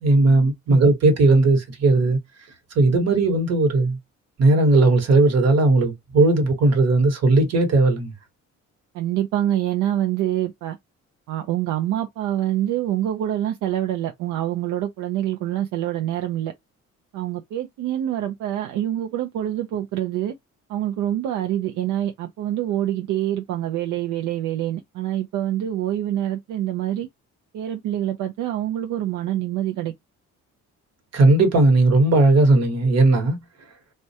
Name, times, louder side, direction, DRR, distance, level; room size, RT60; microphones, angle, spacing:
voice 1, 0.0-2.2 2.7-4.0 4.4-8.1 31.1-33.4, right 2 dB, 55° right, 1.1 m, -17 dB
voice 2, 8.9-10.8 11.3-16.5 17.1-20.3 20.7-27.1 27.5-29.9, right 12 dB, 80° right, 0.5 m, -26 dB
2.2 x 2.1 x 2.6 m
cardioid pair, 90°, 30 cm